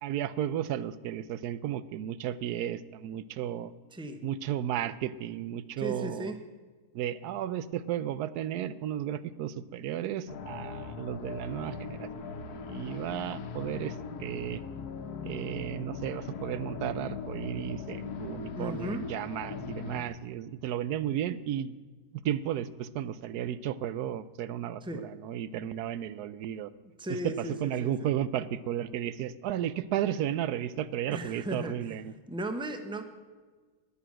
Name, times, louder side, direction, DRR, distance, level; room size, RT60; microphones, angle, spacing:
voice 1, 0.0-3.7 4.2-6.3 6.9-12.1 12.4-14.6 15.2-21.7 22.1-26.7 27.1-27.3 27.6-32.1, right 10 dB, 90° right, 16 dB, 1.2 m, -34 dB
voice 2, 5.8-6.4 18.5-19.1 24.8-25.0 27.0-28.1 31.1-32.0 32.3-33.0, right 1 dB, 5° right, 7 dB, 0.8 m, -36 dB
sound 1, 10.3-20.0, left 5 dB, 85° left, 1.5 m, -40 dB
20.0 x 6.9 x 6.3 m, 1.4 s
omnidirectional pair, 1.6 m